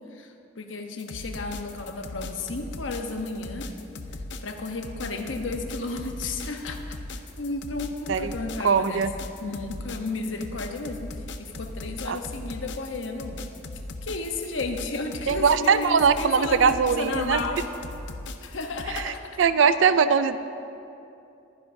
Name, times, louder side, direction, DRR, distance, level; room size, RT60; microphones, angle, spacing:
voice 1, 0.1-3.7 4.4-6.9 7.4-9.0 9.4-13.4 14.0-17.7 18.4-19.4, left 3 dB, 85° left, 4 dB, 1.0 m, -33 dB
sound 1, 1.0-19.0, left 2 dB, 65° left, 0.7 m, -38 dB
voice 2, 8.6-9.1 12.1-12.2 15.3-17.4 18.9-20.4, right 6 dB, 75° right, 12 dB, 0.4 m, -21 dB
21.5 x 10.0 x 2.7 m, 2.7 s
head